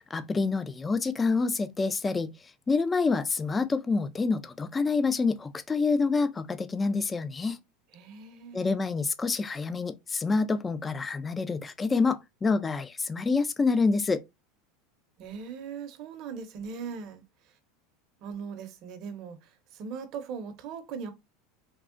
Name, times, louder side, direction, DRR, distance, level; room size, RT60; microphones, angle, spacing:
voice 1, 0.1-2.3 2.7-7.6 8.5-14.2, left 4 dB, 15° left, 0.3 m, -27 dB
voice 2, 7.9-8.7 15.2-17.2 18.2-19.4 19.7-21.1, right 6 dB, 50° right, 0.6 m, -39 dB
3.5 x 2.0 x 2.4 m
supercardioid pair, 135°, 0 cm